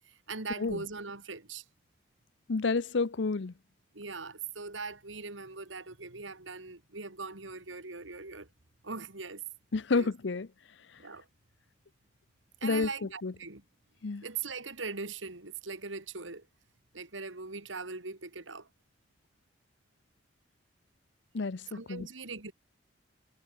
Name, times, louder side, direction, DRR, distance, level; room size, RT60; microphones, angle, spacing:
voice 1, 0.0-1.6 3.9-8.5 8.8-9.4 9.9-10.1 11.0-11.3 12.6-13.6 14.2-16.5 16.9-18.7 21.7-22.5, right 4 dB, 90° right, 3.0 m, -40 dB
voice 2, 2.5-3.5 9.7-10.5 12.6-13.3 14.0-14.2 21.3-21.6 21.9-22.1, left 4 dB, 70° left, 0.6 m, -30 dB
head